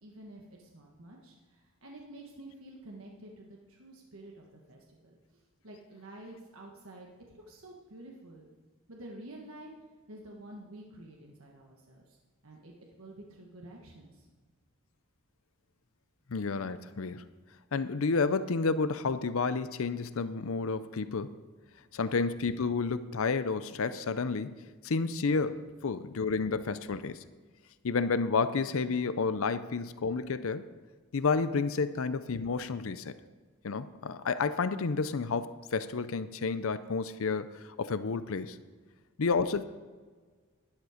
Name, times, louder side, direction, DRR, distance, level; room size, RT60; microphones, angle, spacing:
voice 1, 0.0-8.5 8.9-9.7 10.1-12.2 12.4-14.3 21.7-21.9, right 1 dB, 65° right, -1 dB, 1.5 m, -50 dB
voice 2, 16.3-17.2 17.7-21.3 21.9-24.6 24.8-27.2 27.8-30.7 31.1-33.2 33.6-38.6 39.2-39.6, left 4 dB, 65° left, 13 dB, 0.6 m, -30 dB
12.0 x 11.0 x 5.0 m, 1.5 s
head